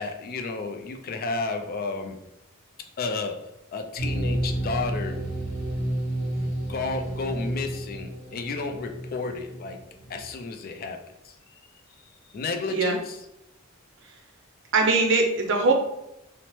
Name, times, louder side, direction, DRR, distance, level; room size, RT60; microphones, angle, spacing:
voice 1, 0.0-2.2 3.0-3.4 3.7-5.2 6.7-9.8 10.1-11.0 11.2-11.4 12.3-13.2, left 4 dB, 45° left, 4 dB, 0.3 m, -32 dB
sound 1, 4.0-9.7 10.0-10.2, right 1 dB, 85° left, 0.8 m, -31 dB
voice 2, 14.7-15.7, right 3 dB, 60° right, 2 dB, 0.6 m, -22 dB
2.9 x 2.1 x 3.0 m, 0.86 s
head